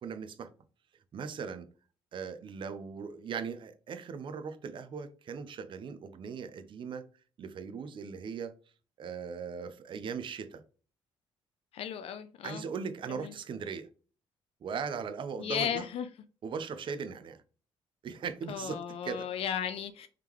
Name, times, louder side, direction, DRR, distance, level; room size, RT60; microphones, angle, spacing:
voice 1, 0.0-0.5 1.1-1.7 2.1-7.0 7.4-8.5 9.0-10.6 12.4-13.9 14.6-15.9 16.4-17.4 18.0-19.3, right 6 dB, 50° right, 0.6 m, -39 dB
voice 2, 11.7-12.6 13.1-13.3 15.4-16.1 18.5-20.1, left 9 dB, 65° left, 0.4 m, -35 dB
3.7 x 3.3 x 3.0 m
cardioid pair, 95°, 11 cm